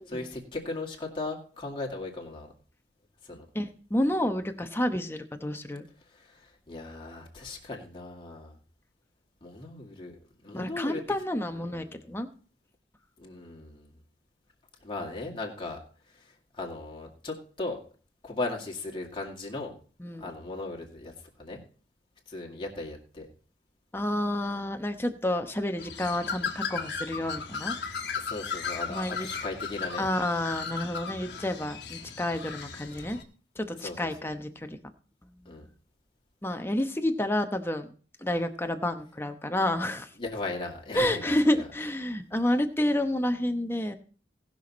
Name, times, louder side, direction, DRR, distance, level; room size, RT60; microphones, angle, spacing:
voice 1, 0.1-2.5 3.3-3.4 6.2-8.5 9.4-10.1 10.4-11.0 11.5-12.0 13.2-13.9 14.8-15.8 16.6-17.8 18.2-19.7 20.2-21.6 22.3-23.3 28.2-30.1 33.8-34.1 35.5-35.7 40.2-41.6, left 2 dB, 30° left, 0 dB, 2.3 m, -37 dB
voice 2, 3.5-5.9 10.5-12.3 20.0-20.3 23.9-27.7 28.9-29.3 30.0-33.2 33.6-34.8 36.4-37.9 38.2-40.1 40.9-43.9, left 1 dB, 15° left, 7 dB, 0.9 m, -29 dB
Bird, 25.8-33.2, left 6 dB, 70° left, 1.4 m, -36 dB
18.5 x 6.2 x 4.2 m, 0.40 s
head